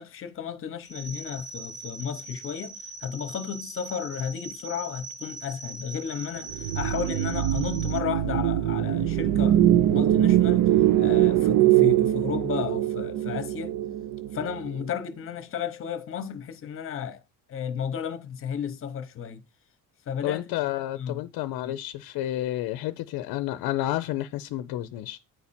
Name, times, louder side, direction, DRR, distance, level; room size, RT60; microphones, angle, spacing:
voice 1, 0.0-10.7 11.0-13.7 14.3-17.2 17.5-19.4 20.1-20.5 21.0-21.2 21.6-21.8, left 8 dB, 35° left, 0.9 m, -33 dB
sound 1, 0.8-8.0, right 2 dB, ahead, 0.6 m, -41 dB
sound 2, 6.5-14.8, right 12 dB, 60° right, 0.6 m, -22 dB
voice 2, 20.2-25.2, left 14 dB, 75° left, 0.6 m, -30 dB
9.1 x 4.3 x 4.2 m
cardioid pair, 160°, 36 cm